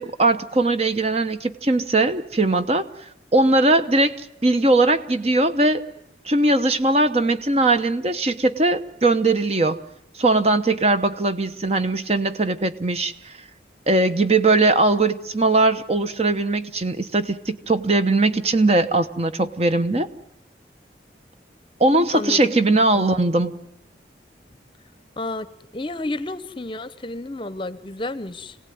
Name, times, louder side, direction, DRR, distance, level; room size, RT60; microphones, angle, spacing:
voice 1, 0.0-2.9 3.3-5.8 6.2-9.8 10.1-13.4 13.9-20.1 21.8-23.5, right 2 dB, 35° right, 10 dB, 1.0 m, -20 dB
voice 2, 25.2-25.5 25.7-28.6, left 2 dB, 30° left, 14 dB, 0.8 m, -31 dB
26.5 x 17.5 x 9.4 m, 0.86 s
head